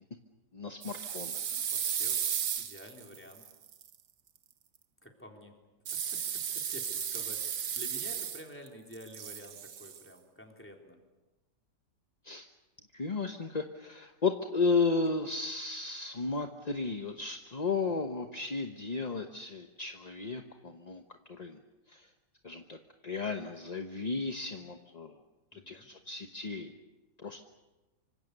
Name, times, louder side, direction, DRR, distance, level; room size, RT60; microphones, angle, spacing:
voice 1, 0.5-1.4 12.2-12.5 12.9-21.0 21.3-21.6 21.9-22.1 22.4-22.8 23.0-25.2 25.5-26.7 27.2-27.4, left 4 dB, 30° left, 5 dB, 0.9 m, -34 dB
sound 1, 0.8-3.9 5.9-8.7 8.9-10.0, right 8 dB, 60° right, 1.4 m, -35 dB
voice 2, 1.7-2.2 2.6-3.4 5.0-5.5 5.9-11.0 17.8-18.1 25.5-25.9, equal, 5° left, 1 dB, 3.7 m, -49 dB
26.0 x 25.5 x 6.8 m, 1.1 s
omnidirectional pair, 1.9 m